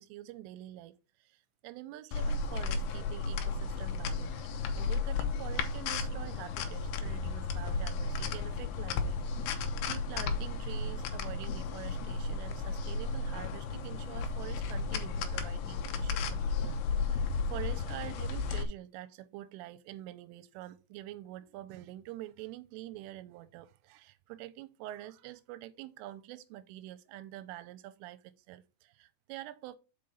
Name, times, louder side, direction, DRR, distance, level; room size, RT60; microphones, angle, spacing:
voice 1, 0.0-4.4 4.8-17.2 17.5-29.8, right 15 dB, 90° right, 3.2 m, -46 dB
sound 1, 2.1-18.6, left 4 dB, 75° left, 2.7 m, -34 dB
6.7 x 5.2 x 5.4 m
omnidirectional pair, 5.6 m